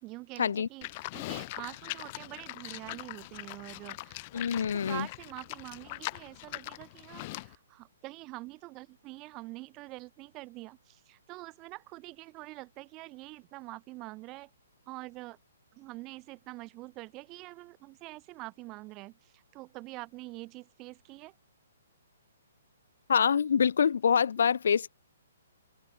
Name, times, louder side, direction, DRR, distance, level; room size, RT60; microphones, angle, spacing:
voice 1, 0.0-14.5 14.9-15.4 15.7-21.3 24.4-24.5, right 21 dB, 20° right, 2.2 m, -45 dB
Livestock farm animals working animals, 0.8-7.5, left 22 dB, 30° left, 1.9 m, -41 dB
voice 2, 4.3-5.1 23.1-24.9, left 7 dB, 65° left, 0.4 m, -25 dB
hypercardioid pair, 165°, 0 cm